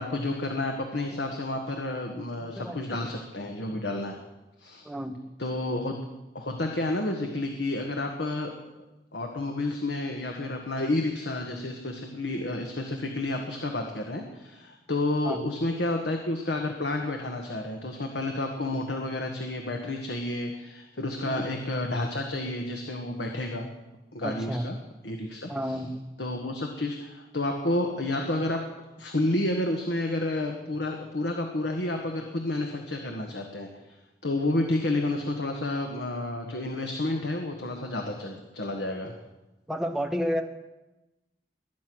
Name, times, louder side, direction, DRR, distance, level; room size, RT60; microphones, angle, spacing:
voice 1, 0.0-4.2 4.6-4.8 5.4-6.0 6.3-8.5 9.1-23.7 24.1-24.8 25.0-25.8 26.2-28.6 29.0-33.7 34.2-39.1, left 2 dB, 85° left, 3 dB, 1.5 m, -30 dB
voice 2, 2.5-3.0 4.8-5.2 15.2-15.4 21.2-21.4 24.2-24.6 25.5-26.0 39.7-40.4, equal, ahead, 3 dB, 1.2 m, -31 dB
21.0 x 9.8 x 6.2 m, 1.0 s
head